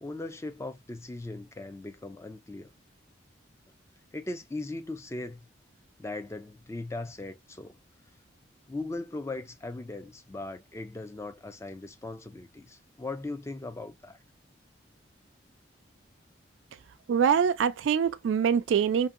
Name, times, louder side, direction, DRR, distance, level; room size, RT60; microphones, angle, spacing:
voice 1, 0.0-2.7 4.1-5.5 6.0-7.8 8.7-14.2, left 2 dB, 15° left, 0.4 m, -39 dB
voice 2, 17.1-19.1, right 7 dB, 80° right, 0.3 m, -24 dB
2.6 x 2.6 x 2.4 m
head